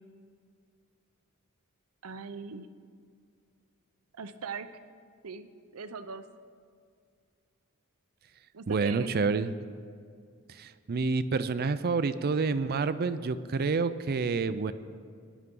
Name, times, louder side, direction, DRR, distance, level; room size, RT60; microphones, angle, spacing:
voice 1, 2.0-2.7 4.1-4.8 5.2-6.2 8.5-9.1, right 5 dB, 90° right, 11 dB, 0.7 m, -40 dB
voice 2, 8.7-9.5 10.5-14.7, right 4 dB, 45° right, 12 dB, 0.4 m, -28 dB
19.0 x 11.0 x 3.8 m, 2.2 s
head